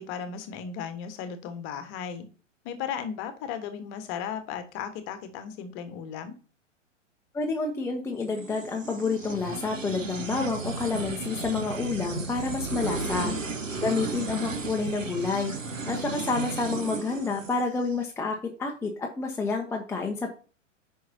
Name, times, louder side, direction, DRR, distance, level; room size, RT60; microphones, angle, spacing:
voice 1, 0.0-2.2 2.6-6.3 12.9-13.4, left 7 dB, 30° left, 9 dB, 1.4 m, -36 dB
voice 2, 7.3-13.3 13.8-15.5 15.9-20.3, left 4 dB, 5° left, 2 dB, 0.8 m, -29 dB
sound 1, 8.3-18.0, right 3 dB, 85° right, 1.1 m, -34 dB
9.3 x 5.7 x 2.8 m, 0.37 s
figure-of-eight pair, 105°, 38 cm